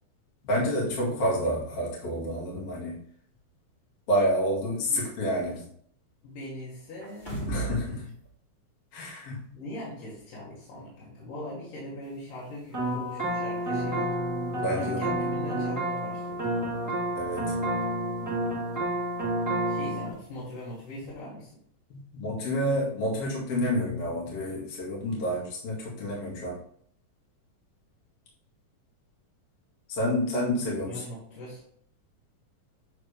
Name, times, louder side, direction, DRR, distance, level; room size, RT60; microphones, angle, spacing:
voice 1, 0.4-3.0 4.1-5.7 7.5-8.0 8.9-9.5 14.6-15.2 17.1-17.7 21.9-26.6 29.9-31.0, equal, 50° left, -5 dB, 2.9 m, -29 dB
voice 2, 6.2-8.0 9.5-14.1 14.8-16.5 19.6-21.5 30.8-31.6, left 1 dB, 85° left, -7 dB, 3.4 m, -41 dB
sound 1, 7.0-7.9 8.2-8.3, right 3 dB, 20° left, 1.7 m, -33 dB
sound 2, 12.7-20.1, right 1 dB, 25° right, 0.4 m, -29 dB
9.7 x 3.7 x 3.4 m, 0.65 s
omnidirectional pair, 3.7 m